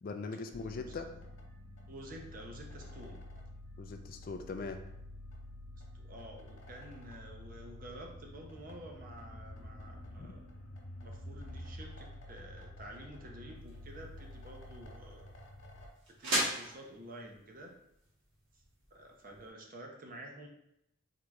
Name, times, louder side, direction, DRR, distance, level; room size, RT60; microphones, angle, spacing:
voice 1, 0.0-1.1 3.8-4.8 10.2-10.3, left 4 dB, 45° left, 6 dB, 0.3 m, -41 dB
sound 1, 0.5-15.9, left 1 dB, 65° left, 1.3 m, -49 dB
voice 2, 0.6-1.0 1.9-3.2 5.8-10.4 11.0-15.3 16.2-17.7 18.5-18.6 18.9-20.5, right 1 dB, 40° right, 1 dB, 0.7 m, -50 dB
sound 2, 13.6-19.5, right 1 dB, 60° right, 1.3 m, -40 dB
3.8 x 3.2 x 3.5 m, 0.80 s
head